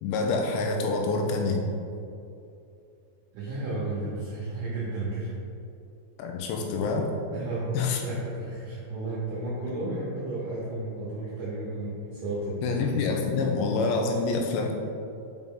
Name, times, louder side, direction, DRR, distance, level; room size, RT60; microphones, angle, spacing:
voice 1, 0.0-1.6 6.2-7.1 7.7-8.0 12.6-14.7, left 4 dB, 85° left, 2 dB, 3.0 m, -26 dB
voice 2, 3.3-5.3 7.3-12.9, right 2 dB, 70° right, -7 dB, 2.0 m, -33 dB
6.2 x 5.4 x 3.7 m, 2.6 s
omnidirectional pair, 5.0 m